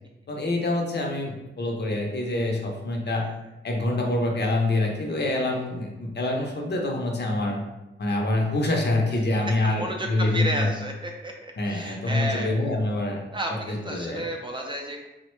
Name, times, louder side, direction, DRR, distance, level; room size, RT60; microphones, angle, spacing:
voice 1, 0.3-3.3 3.6-7.6 8.0-10.7 11.6-13.2 13.7-14.2, left 2 dB, 55° left, 0 dB, 0.6 m, -26 dB
voice 2, 9.6-12.5 13.3-15.1, right 1 dB, 25° right, 0 dB, 0.4 m, -32 dB
3.7 x 2.1 x 3.0 m, 0.96 s
wide cardioid pair, 155°, 21 cm